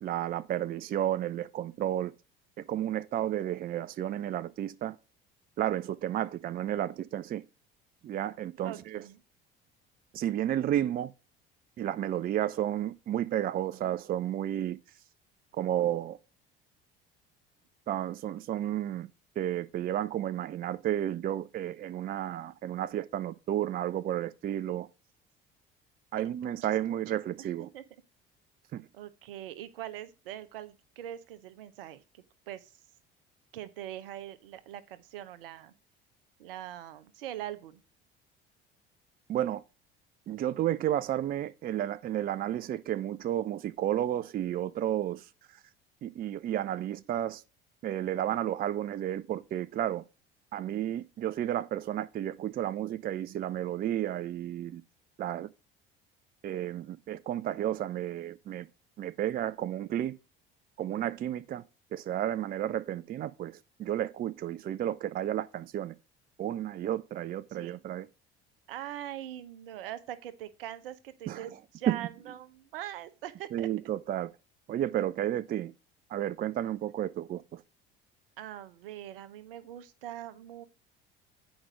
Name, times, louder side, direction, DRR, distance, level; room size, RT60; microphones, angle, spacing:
voice 1, 0.0-2.1 2.6-5.0 5.6-7.4 8.0-9.0 10.1-11.1 11.8-14.8 15.5-16.2 17.9-19.1 19.4-24.9 26.1-27.7 28.7-28.8 39.3-39.6 40.3-45.6 46.0-47.4 47.8-50.0 50.5-54.8 55.2-55.5 56.4-58.7 59.0-60.1 60.8-61.6 61.9-66.0 66.4-68.1 71.3-71.5 71.9-72.1 73.5-74.3 74.7-75.7 76.1-77.6, right 11 dB, 30° right, 0.5 m, -32 dB
voice 2, 8.6-9.2 26.2-27.0 27.4-27.8 28.9-32.7 33.5-35.7 36.4-37.8 67.5-67.8 68.7-73.7 78.4-80.7, right 12 dB, 70° right, 0.9 m, -42 dB
8.7 x 5.1 x 4.9 m
figure-of-eight pair, 60°, 29 cm